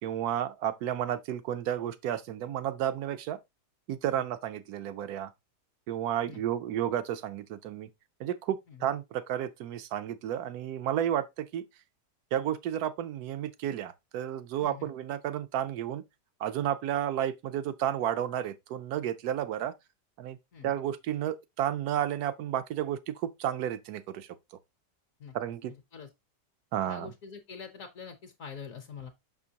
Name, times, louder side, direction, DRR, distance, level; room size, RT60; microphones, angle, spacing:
voice 1, 0.0-3.4 3.9-5.3 5.9-7.9 8.2-11.6 12.3-16.0 16.4-19.7 20.2-20.4 20.6-24.4 25.3-25.7 26.7-27.1, right 10 dB, 70° right, 1.0 m, -32 dB
voice 2, 14.6-14.9 20.5-20.7 25.2-25.3 25.9-26.1 26.8-29.1, left 6 dB, 60° left, 1.1 m, -45 dB
6.1 x 5.7 x 2.8 m
omnidirectional pair, 1.9 m